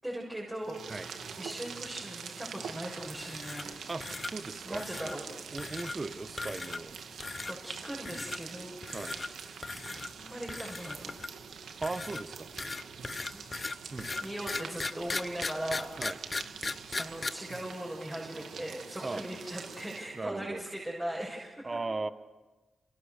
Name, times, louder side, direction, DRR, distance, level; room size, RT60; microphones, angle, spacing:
voice 1, 0.0-3.7 4.5-5.2 7.4-8.8 9.0-9.5 9.8-11.2 13.3-13.4 13.8-15.9 17.0-21.7, right 1 dB, 15° right, -2 dB, 6.9 m, -39 dB
sound 1, 0.6-20.2, right 6 dB, 80° right, 2.0 m, -45 dB
sound 2, 3.1-3.7 4.0-4.3 4.7-5.2 5.6-6.0 6.4-6.9 7.2-7.5 8.1-8.4 8.8-9.3 9.6-10.1 10.5-11.4 11.8-17.3, left 3 dB, 35° left, 1.0 m, -37 dB
voice 2, 3.9-5.0 5.5-7.0 8.9-9.2 11.8-12.5 13.9-14.1 16.0-16.2 19.0-19.2 20.1-20.6 21.6-22.1, right 3 dB, 35° right, 12 dB, 1.4 m, -37 dB
28.5 x 28.0 x 6.8 m, 1.2 s
cardioid pair, 60°, 0 cm